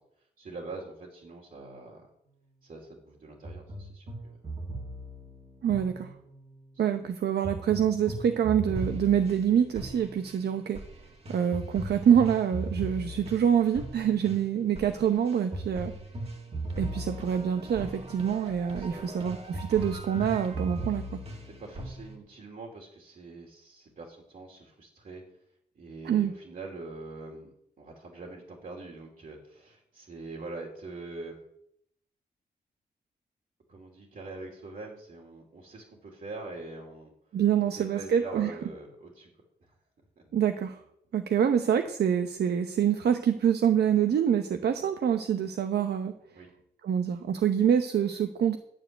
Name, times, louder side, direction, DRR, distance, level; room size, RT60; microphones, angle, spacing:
voice 1, 0.4-2.0 2.6-4.4 7.0-7.1 18.7-19.2 21.6-25.2 25.7-31.4 33.7-37.1 37.6-39.3 39.6-39.8 40.2-40.3 46.3-46.5, right 3 dB, 55° right, -1 dB, 2.7 m, -44 dB
sound 1, 3.4-6.5 7.4-22.2, right 1 dB, 40° right, 2.0 m, -38 dB
voice 2, 5.6-6.1 6.8-10.8 11.3-15.9 16.8-21.2 26.0-26.3 37.3-38.5 40.3-40.8 41.1-46.1 46.8-48.6, right 8 dB, 80° right, 7 dB, 0.9 m, -26 dB
12.0 x 7.0 x 9.2 m, 0.73 s
wide cardioid pair, 170°, 17 cm